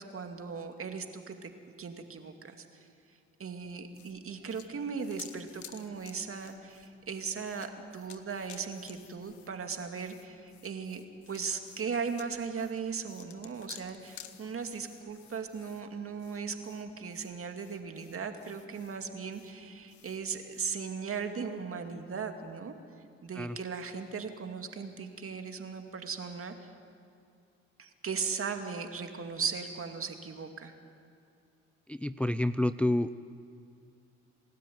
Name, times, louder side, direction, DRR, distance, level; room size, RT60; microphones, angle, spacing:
voice 1, 0.0-1.5 1.8-2.9 3.4-22.7 23.2-26.7 27.8-30.7, right 5 dB, 45° right, 5 dB, 2.4 m, -38 dB
sound 1, 3.6-20.7, left 11 dB, 75° left, 1.3 m, -55 dB
voice 2, 31.9-33.2, left 1 dB, 5° left, 12 dB, 0.5 m, -29 dB
27.5 x 13.0 x 9.5 m, 2.4 s
supercardioid pair, 60°, 30 cm